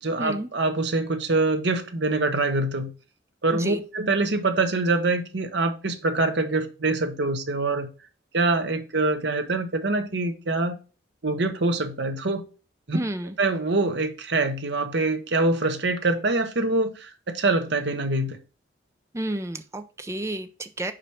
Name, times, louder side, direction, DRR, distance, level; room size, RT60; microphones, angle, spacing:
voice 1, 0.0-2.9 3.4-7.9 8.3-10.8 11.2-12.4 12.9-13.0 13.4-18.4, right 2 dB, 60° right, 1.0 m, -24 dB
voice 2, 12.9-13.3 19.1-20.9, right 1 dB, 15° right, 0.5 m, -31 dB
5.0 x 5.0 x 4.3 m
head